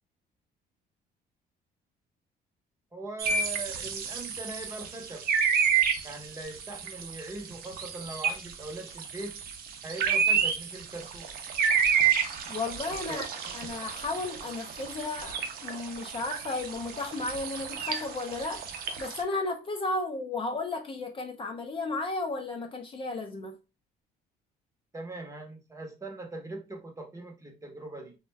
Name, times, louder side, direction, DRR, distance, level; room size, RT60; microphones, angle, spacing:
voice 1, 2.9-5.2 6.0-9.4 9.8-11.3 12.9-13.5 24.9-28.2, right 2 dB, 20° right, 0.8 m, -41 dB
sound 1, 3.2-19.2, right 6 dB, 60° right, 0.6 m, -30 dB
voice 2, 12.5-13.3 13.5-18.7 19.0-23.6, left 3 dB, 30° left, 0.5 m, -34 dB
2.4 x 2.1 x 3.2 m
cardioid pair, 110°, 17 cm